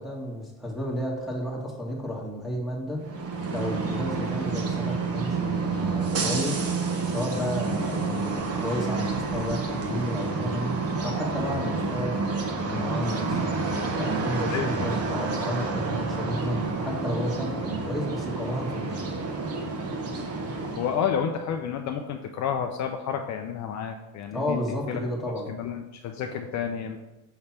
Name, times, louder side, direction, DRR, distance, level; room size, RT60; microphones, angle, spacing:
voice 1, 0.0-3.1 3.5-6.6 7.0-10.8 11.0-13.5 13.9-19.0 24.3-25.5, equal, ahead, -4 dB, 1.5 m, -32 dB
sound 1, 3.0-21.1, right 4 dB, 40° right, 1.1 m, -29 dB
voice 2, 14.5-14.9 20.8-24.6 24.9-25.0 25.5-27.0, left 8 dB, 50° left, 5 dB, 0.5 m, -30 dB
5.8 x 3.3 x 5.8 m, 1.1 s
cardioid pair, 115°, 38 cm